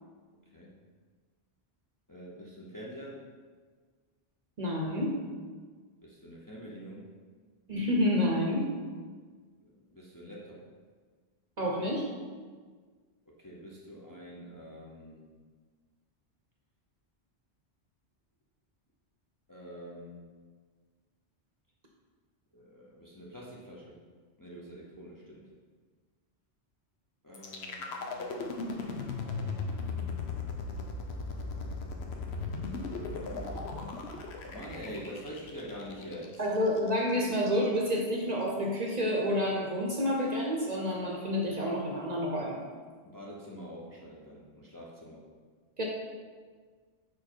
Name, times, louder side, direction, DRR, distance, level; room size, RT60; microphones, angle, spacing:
voice 1, 2.1-3.3 6.0-7.1 9.9-10.7 13.3-15.3 19.5-20.3 22.5-24.0 24.4-25.5 27.2-28.7 33.0-33.9 34.4-36.4 43.0-45.3, equal, 20° left, -4 dB, 0.6 m, -46 dB
voice 2, 4.6-5.2 7.7-8.7 11.6-12.1 36.4-42.6 45.8-45.9, equal, 45° right, -2 dB, 0.8 m, -29 dB
sound 1, 27.3-37.3, left 3 dB, 70° left, 0.9 m, -37 dB
4.9 x 4.6 x 4.4 m, 1.5 s
omnidirectional pair, 1.1 m